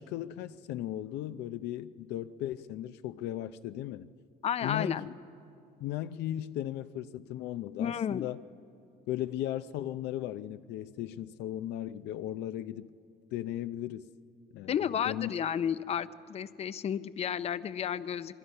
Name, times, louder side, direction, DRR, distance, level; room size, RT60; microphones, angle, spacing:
voice 1, 0.0-4.1 4.6-5.0 5.8-8.4 9.1-12.9 13.3-14.1 14.5-15.3, left 12 dB, 85° left, 0.6 m, -36 dB
voice 2, 4.4-5.1 7.8-8.3 14.7-18.4, left 8 dB, 40° left, 0.6 m, -32 dB
26.5 x 22.0 x 5.5 m
cardioid pair, 110°, 17 cm